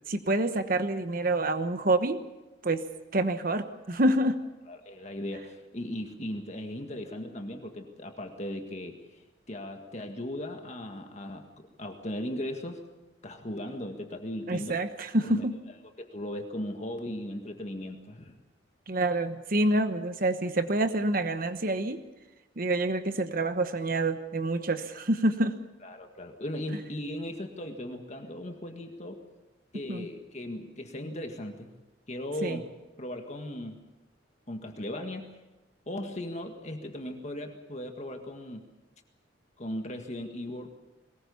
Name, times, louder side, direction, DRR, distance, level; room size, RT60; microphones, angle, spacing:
voice 1, 0.1-2.2 2.6-2.8 3.1-4.3 14.5-15.5 18.9-22.0 22.6-25.5 29.9-30.0 32.4-32.6, right 2 dB, 50° right, 9 dB, 1.1 m, -27 dB
voice 2, 4.7-9.2 9.5-12.8 13.2-14.8 15.2-15.4 16.0-18.4 25.8-29.2 29.7-31.7 32.1-32.7 33.0-33.8 34.5-35.3 35.9-38.6 39.6-40.7, left 1 dB, 40° left, 4 dB, 1.8 m, -37 dB
22.0 x 20.0 x 7.1 m, 1.1 s
head